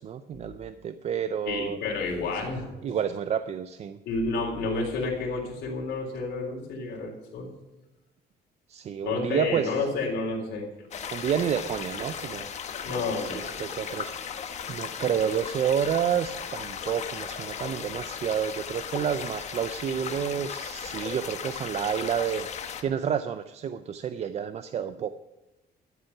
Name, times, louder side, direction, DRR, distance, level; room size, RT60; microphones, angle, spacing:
voice 1, 0.0-1.8 2.8-4.0 8.7-9.8 11.1-12.5 13.0-25.1, right 8 dB, 40° right, 11 dB, 0.4 m, -30 dB
voice 2, 1.5-2.7 4.1-7.5 9.0-10.7 12.8-13.4, left 3 dB, 80° left, -2 dB, 3.7 m, -30 dB
sound 1, 10.9-22.8, left 7 dB, 40° left, 0.9 m, -36 dB
13.0 x 7.8 x 5.8 m, 1.0 s
cardioid pair, 165°, 18 cm